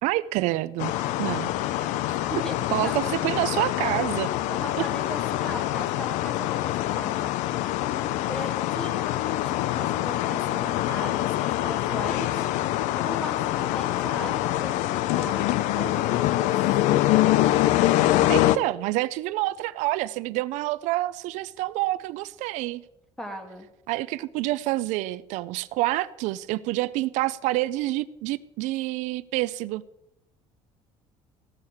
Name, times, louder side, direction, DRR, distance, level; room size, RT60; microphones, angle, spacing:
voice 1, 0.0-0.9 1.2-1.5 2.1-2.2 2.7-4.3 18.3-22.8 23.9-29.8, right 17 dB, 80° right, 15 dB, 0.4 m, -27 dB
sound 1, 0.8-18.6, left 14 dB, 85° left, 0.5 m, -25 dB
voice 2, 1.8-3.4 4.4-7.3 7.9-9.1 9.4-12.5 13.0-16.6 23.2-23.7, equal, 5° left, 5 dB, 1.6 m, -38 dB
15.5 x 6.4 x 7.1 m, 0.89 s
cardioid pair, 165°, 12 cm